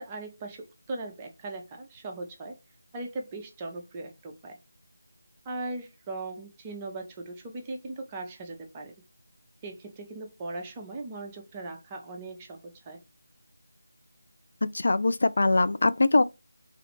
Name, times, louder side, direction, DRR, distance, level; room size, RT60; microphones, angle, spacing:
voice 1, 0.0-2.6 2.9-4.6 5.4-8.9 9.6-13.0, right 2 dB, 15° right, 0.5 m, -39 dB
voice 2, 14.6-16.2, left 2 dB, 50° left, 0.3 m, -22 dB
3.2 x 2.4 x 3.0 m
figure-of-eight pair, 160°, 0 cm